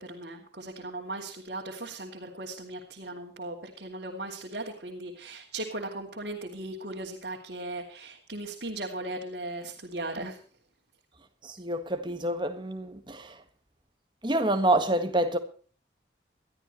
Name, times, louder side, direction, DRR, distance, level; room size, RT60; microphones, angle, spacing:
voice 1, 0.0-10.4, right 2 dB, 60° right, 2.9 m, -38 dB
voice 2, 11.4-13.4 14.2-15.4, right 1 dB, 25° right, 1.7 m, -27 dB
21.5 x 13.0 x 3.2 m
head